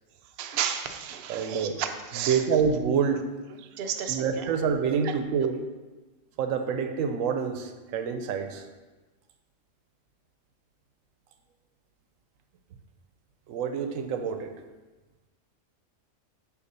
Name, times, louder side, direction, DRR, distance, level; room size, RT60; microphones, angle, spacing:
voice 1, 0.4-2.4 3.8-4.5 5.0-5.1, right 9 dB, 60° right, 6 dB, 0.6 m, -32 dB
voice 2, 1.3-1.8 2.1-3.3 4.1-5.7 6.4-8.7 13.5-14.6, right 6 dB, 85° right, 6 dB, 1.0 m, -27 dB
6.5 x 2.7 x 5.4 m, 1.2 s
omnidirectional pair, 1.3 m